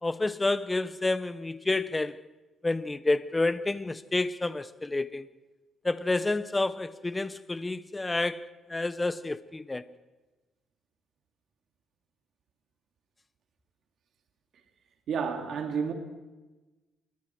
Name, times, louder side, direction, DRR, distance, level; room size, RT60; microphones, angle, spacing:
voice 1, 0.0-2.2 2.6-5.3 5.8-9.8, left 2 dB, 20° left, 1.0 m, -29 dB
voice 2, 15.1-15.9, right 6 dB, 65° right, 2.7 m, -30 dB
29.0 x 22.0 x 4.7 m
cardioid pair, 90°, 0 cm